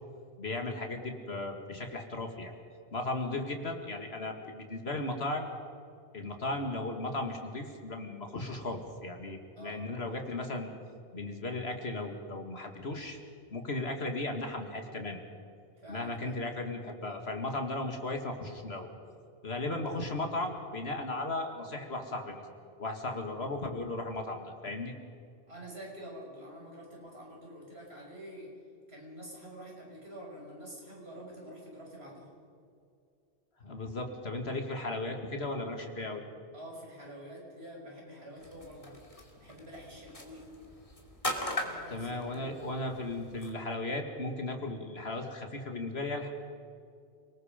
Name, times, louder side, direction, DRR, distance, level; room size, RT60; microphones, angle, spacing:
voice 1, 0.4-2.5 2.9-5.5 6.1-10.7 11.1-13.2 13.5-15.2 15.9-18.9 19.4-22.4 22.8-24.9 33.6-36.2 41.9-46.3, left 2 dB, 70° left, 4 dB, 2.5 m, -36 dB
voice 2, 15.8-16.4 25.5-28.5 28.9-32.3 36.5-39.0 39.4-40.5 41.6-42.6, equal, 70° right, -2 dB, 6.2 m, -47 dB
sound 1, 38.4-43.5, left 1 dB, 30° left, 2.9 m, -40 dB
29.0 x 20.5 x 5.3 m, 2.4 s
omnidirectional pair, 1.1 m